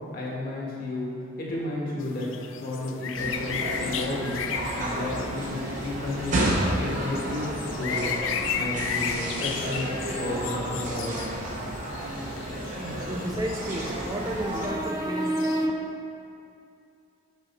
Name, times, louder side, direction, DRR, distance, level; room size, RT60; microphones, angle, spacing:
voice 1, 0.1-1.1 1.4-2.3 2.6-4.4 4.7-7.5 7.7-8.1 8.5-9.9 10.2-11.1, left 1 dB, 45° left, -4 dB, 1.4 m, -32 dB
sound 1, 2.0-15.7, left 7 dB, 70° left, 0.4 m, -35 dB
sound 2, 3.1-14.7, right 1 dB, 40° right, 0.9 m, -31 dB
voice 2, 13.0-15.7, right 1 dB, 20° right, 0 dB, 0.4 m, -30 dB
6.3 x 6.2 x 4.2 m, 2.6 s
head